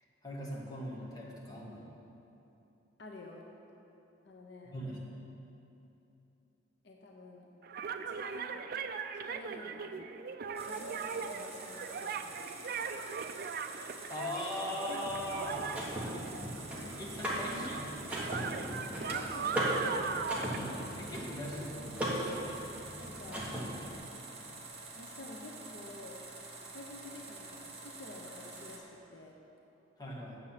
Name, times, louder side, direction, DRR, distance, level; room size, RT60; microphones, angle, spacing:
voice 1, 0.2-1.9 4.6-5.0 14.1-15.7 17.0-18.1 20.5-21.9 30.0-30.4, left 1 dB, 20° left, -4 dB, 1.4 m, -40 dB
voice 2, 3.0-3.5 4.2-4.8 6.8-7.5 8.0-8.6 9.2-10.1 10.6-12.6 19.0-19.8 23.0-23.5 25.0-26.2 26.7-29.4, left 2 dB, 65° left, 0 dB, 0.7 m, -49 dB
sound 1, 7.6-16.8 17.1-21.4, right 6 dB, 50° right, 0.4 m, -39 dB
sound 2, 10.6-28.8, right 3 dB, 30° right, 1.0 m, -48 dB
Car / Mechanisms, 15.0-23.9, equal, 5° right, 1.5 m, -38 dB
8.1 x 7.3 x 5.8 m, 2.9 s
head